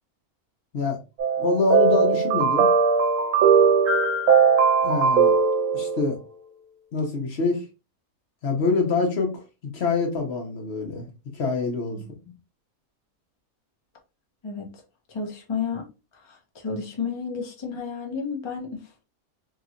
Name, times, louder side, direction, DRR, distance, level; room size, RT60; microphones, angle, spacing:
sound 1, 1.2-6.2, right 5 dB, 65° right, 1.0 m, -19 dB
voice 1, 1.4-2.7 4.8-5.3 5.7-6.2 6.9-7.6 8.4-9.4 9.7-12.0, left 3 dB, 50° left, 1.0 m, -25 dB
voice 2, 15.1-15.9 16.2-18.9, left 5 dB, 35° left, 0.5 m, -32 dB
3.0 x 2.9 x 2.5 m
omnidirectional pair, 1.5 m